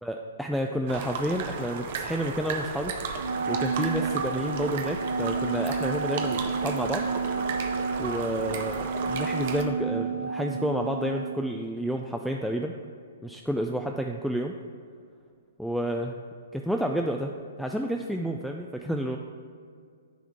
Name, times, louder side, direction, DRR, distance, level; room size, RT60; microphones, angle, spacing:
voice 1, 0.0-2.9 3.5-7.0 8.0-12.7 13.2-14.6 15.6-16.2 16.5-17.3 17.6-19.2, equal, ahead, 2 dB, 0.3 m, -30 dB
sound 1, 0.9-9.6, right 5 dB, 45° right, 0.7 m, -34 dB
Wind instrument woodwind instrument, 3.2-11.3, right 4 dB, 65° right, 1.2 m, -30 dB
9.8 x 3.5 x 5.8 m, 2.2 s
figure-of-eight pair, 115°, 0 cm